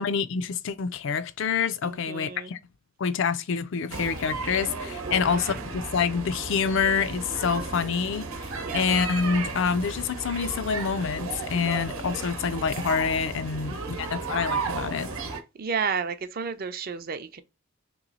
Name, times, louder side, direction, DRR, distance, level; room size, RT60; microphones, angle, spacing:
voice 1, 0.0-2.6 3.0-15.1, left 6 dB, 55° left, 0.4 m, -27 dB
voice 2, 1.8-2.5 5.1-5.6 8.6-8.8 13.6-14.2 15.6-17.4, right 5 dB, 40° right, 0.4 m, -32 dB
sound 1, 3.9-15.4, right 4 dB, 75° right, 0.9 m, -34 dB
3.0 x 3.0 x 3.9 m
head